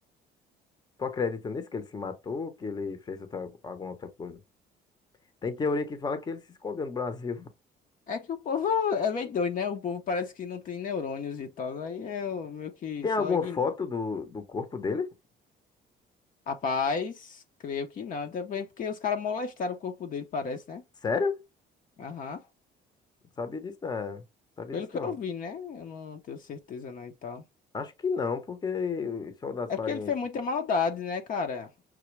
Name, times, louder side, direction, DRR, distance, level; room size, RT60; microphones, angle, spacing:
voice 1, 1.0-4.4 5.4-7.5 13.0-15.1 21.0-21.4 23.4-24.2 24.6-25.1 27.7-30.1, left 4 dB, 25° left, 0.9 m, -32 dB
voice 2, 8.1-13.6 16.5-20.8 22.0-22.4 24.7-27.4 29.7-31.8, left 5 dB, 50° left, 0.8 m, -32 dB
6.0 x 2.2 x 3.2 m
cardioid pair, 110°, 17 cm